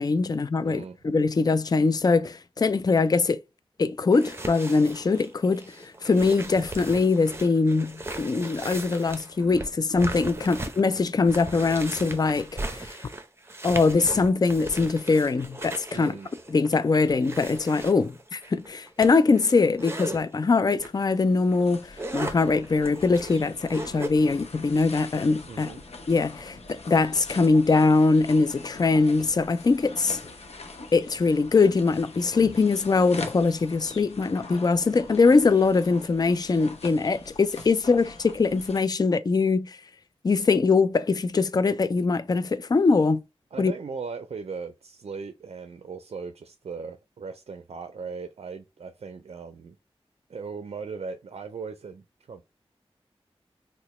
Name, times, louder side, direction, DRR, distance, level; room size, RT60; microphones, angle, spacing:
voice 1, 0.0-3.4 3.8-12.9 13.6-16.1 16.5-25.7 26.1-30.2 30.9-39.8 40.2-43.2 43.6-43.7, left 4 dB, 40° left, 0.3 m, -22 dB
voice 2, 0.6-1.0 10.5-10.6 15.9-16.3 25.5-25.8 43.5-49.8 50.3-52.4, right 5 dB, 75° right, 0.4 m, -38 dB
sound 1, 4.1-20.2 20.8-21.0 21.4-24.1, right 2 dB, 25° right, 0.6 m, -38 dB
sound 2, 20.8-38.8, left 3 dB, 90° left, 0.6 m, -43 dB
2.9 x 2.1 x 4.0 m
wide cardioid pair, 55°, 10 cm